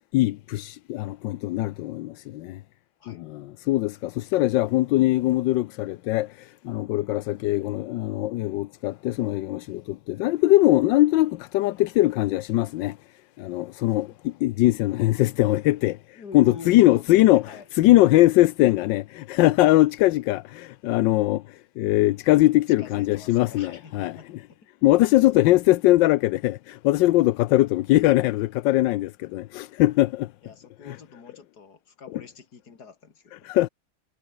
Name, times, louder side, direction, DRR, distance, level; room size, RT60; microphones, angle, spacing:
voice 1, 0.1-2.6 3.1-13.0 13.4-24.1 24.8-30.3 30.9-31.0 33.4-33.7, left 16 dB, 75° left, 1.2 m, -21 dB
voice 2, 16.1-17.7 22.8-24.7 30.4-33.6, left 5 dB, 50° left, 2.9 m, -45 dB
omnidirectional pair, 2.2 m